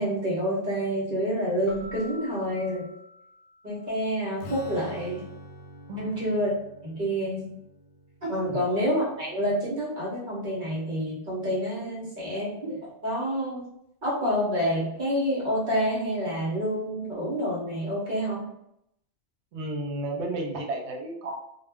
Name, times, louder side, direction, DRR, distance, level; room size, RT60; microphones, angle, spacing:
voice 1, 0.0-2.9 3.6-5.3 6.0-6.5 6.8-7.5 8.2-13.6 14.0-18.5, equal, 50° right, -6 dB, 1.0 m, -28 dB
Keyboard (musical), 1.7-4.1, left 1 dB, 30° right, 0.7 m, -47 dB
Strum, 4.4-10.0, equal, 60° left, 0.7 m, -46 dB
voice 2, 19.5-21.4, right 1 dB, 80° right, 1 dB, 0.9 m, -32 dB
2.3 x 2.0 x 3.3 m, 0.78 s
omnidirectional pair, 1.2 m